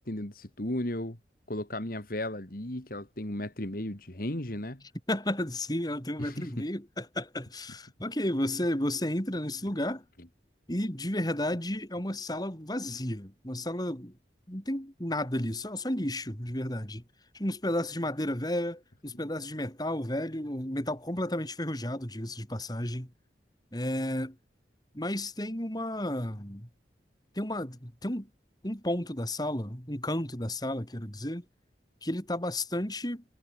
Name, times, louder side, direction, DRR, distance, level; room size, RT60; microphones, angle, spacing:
voice 1, 0.1-1.2 1.5-4.8 6.2-6.5, left 1 dB, 55° left, 2.7 m, -35 dB
voice 2, 5.1-10.0 10.7-14.1 14.5-17.0 17.3-23.1 23.7-24.4 24.9-26.7 27.4-28.3 28.6-31.4 32.0-33.2, left 1 dB, 20° left, 4.3 m, -32 dB
head